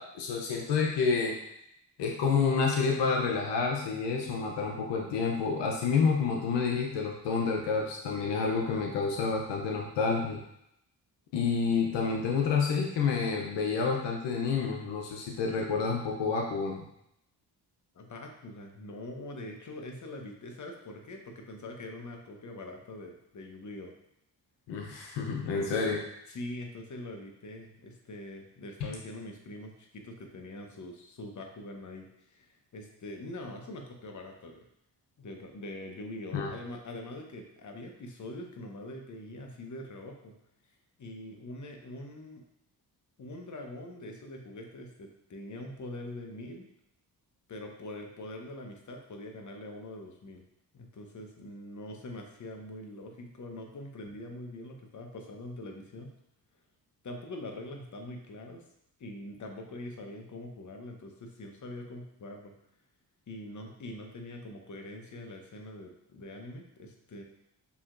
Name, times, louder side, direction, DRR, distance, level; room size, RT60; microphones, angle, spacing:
voice 1, 0.0-1.3 2.0-10.4 11.3-16.8 24.7-26.0 36.3-36.5, left 5 dB, 90° left, 0 dB, 0.7 m, -29 dB
voice 2, 17.9-23.9 25.5-25.8 26.3-34.6 35.2-40.3 41.0-42.4 43.2-46.7 47.5-50.4 50.7-56.1 57.0-58.6 59.0-62.5 63.3-67.2, left 1 dB, 45° left, 2 dB, 1.0 m, -43 dB
6.8 x 3.0 x 2.5 m, 0.79 s
cardioid pair, 60°, 41 cm